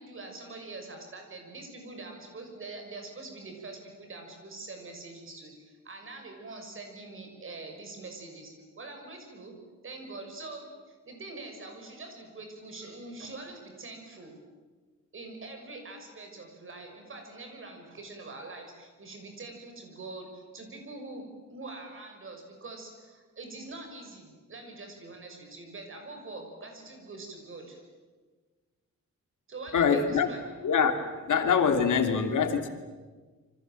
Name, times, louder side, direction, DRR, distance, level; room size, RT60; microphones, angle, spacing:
voice 1, 0.0-9.6 9.8-14.4 15.1-27.8 29.5-30.4, right 2 dB, 45° right, 4 dB, 6.3 m, -44 dB
voice 2, 29.7-30.3 30.6-30.9 31.3-32.7, left 6 dB, 85° left, 6 dB, 2.8 m, -24 dB
27.5 x 25.0 x 7.6 m, 1.4 s
wide cardioid pair, 155°, 30 cm